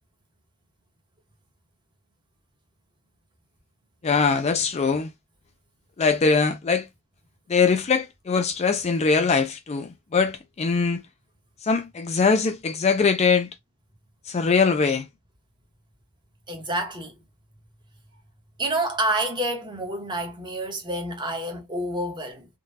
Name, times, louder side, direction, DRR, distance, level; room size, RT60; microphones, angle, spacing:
voice 1, 4.0-5.1 6.0-6.9 7.5-11.0 11.6-13.5 14.3-15.1, left 5 dB, 30° left, 0.4 m, -22 dB
voice 2, 16.5-17.2 18.6-22.5, right 1 dB, 20° right, 1.1 m, -28 dB
3.7 x 2.3 x 2.6 m
head